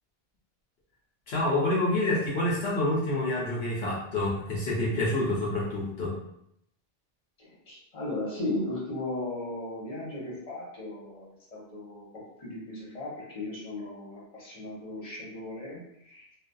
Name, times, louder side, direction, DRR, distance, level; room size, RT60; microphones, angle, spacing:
voice 1, 1.3-6.2, left 1 dB, 75° left, -4 dB, 0.8 m, -27 dB
voice 2, 7.4-16.3, left 2 dB, 40° left, -6 dB, 0.9 m, -36 dB
2.5 x 2.2 x 2.2 m, 0.75 s
omnidirectional pair, 1.1 m